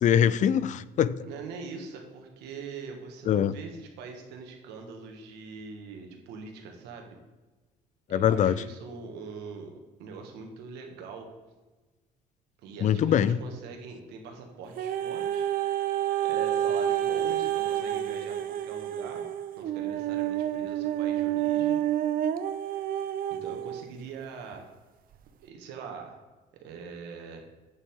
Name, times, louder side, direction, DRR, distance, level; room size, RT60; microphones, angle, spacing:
voice 1, 0.0-1.2 3.3-3.5 8.1-8.6 12.8-13.4, left 9 dB, 45° left, 17 dB, 0.4 m, -23 dB
voice 2, 1.2-7.2 8.1-11.3 12.6-15.5 16.2-19.3 19.6-21.8 23.3-24.7 25.4-26.2 26.5-27.4, right 5 dB, 90° right, 3 dB, 1.6 m, -42 dB
sound 1, 14.8-23.9 24.5-24.6, right 11 dB, 60° right, 0.6 m, -29 dB
8.5 x 7.1 x 3.7 m, 1.2 s
cardioid pair, 110°, 17 cm